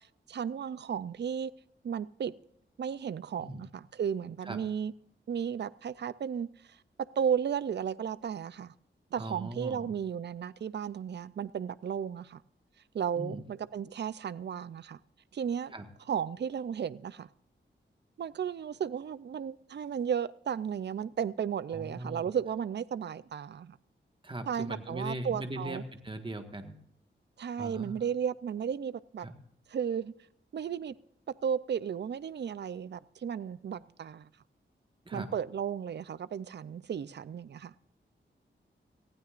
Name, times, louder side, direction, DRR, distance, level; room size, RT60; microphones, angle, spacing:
voice 1, 0.3-1.5 1.8-2.3 2.8-4.9 5.3-6.8 7.2-8.7 9.1-12.4 12.9-15.0 15.3-15.7 16.1-17.3 18.2-23.8 24.5-25.8 27.4-29.3 29.7-30.1 30.5-30.9 31.4-34.3 35.1-37.7, right 8 dB, 60° right, 0.5 m, -34 dB
voice 2, 9.2-9.9 13.2-13.4 15.7-15.9 21.7-22.3 24.2-26.7 27.6-27.9 29.2-29.3 35.0-35.4, right 1 dB, 25° right, 1.6 m, -39 dB
19.0 x 15.5 x 2.5 m
wide cardioid pair, 105°, 20 cm